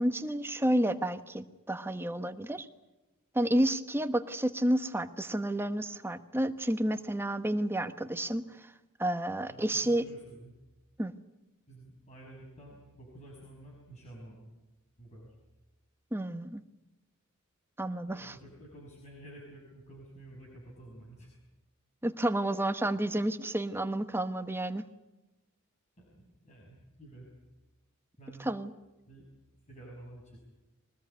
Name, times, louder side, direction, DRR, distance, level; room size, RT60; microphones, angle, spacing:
voice 1, 0.0-2.7 3.3-8.7 9.0-10.0 11.0-11.1 16.1-16.6 17.8-18.4 22.0-24.8 28.4-28.7, right 1 dB, 10° right, 9 dB, 1.1 m, -30 dB
voice 2, 9.5-10.5 11.7-14.5 15.0-15.4 18.1-21.3 26.0-27.3 28.2-28.5 29.1-29.3 29.6-30.4, right 1 dB, 35° left, -2 dB, 6.2 m, -51 dB
23.5 x 19.5 x 9.5 m, 1.0 s
head